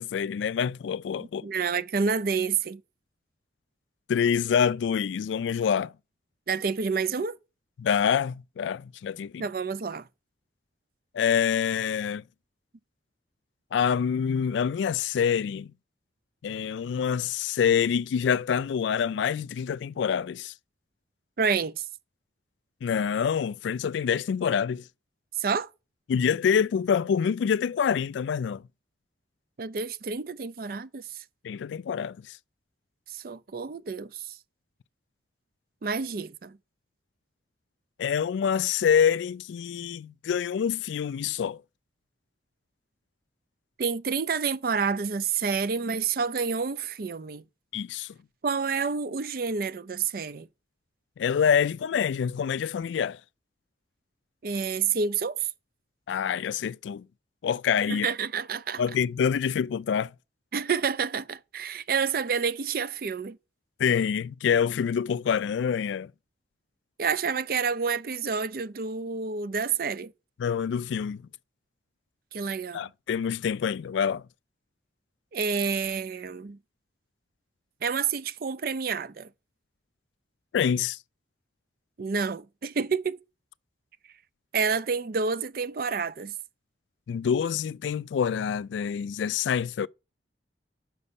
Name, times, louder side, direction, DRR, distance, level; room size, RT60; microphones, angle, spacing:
voice 1, 0.0-1.5 4.1-5.9 7.8-9.4 11.1-12.2 13.7-15.7 16.4-20.5 22.8-24.8 26.1-28.6 31.4-32.4 38.0-41.6 47.7-48.1 51.2-53.2 56.1-57.1 57.4-58.1 58.8-60.1 63.8-66.1 70.4-71.2 72.7-74.2 80.5-81.0 87.1-89.9, left 7 dB, 80° left, 0.3 m, -26 dB
voice 2, 1.4-2.8 6.5-7.4 9.4-10.1 21.4-21.8 25.4-25.7 29.6-31.0 33.1-34.4 35.8-36.6 43.8-47.4 48.4-50.5 54.4-55.5 57.9-58.8 60.5-63.4 67.0-70.1 72.3-72.9 75.3-76.6 77.8-79.3 82.0-83.2 84.5-86.3, right 5 dB, 50° right, 0.4 m, -29 dB
6.0 x 5.4 x 6.8 m
head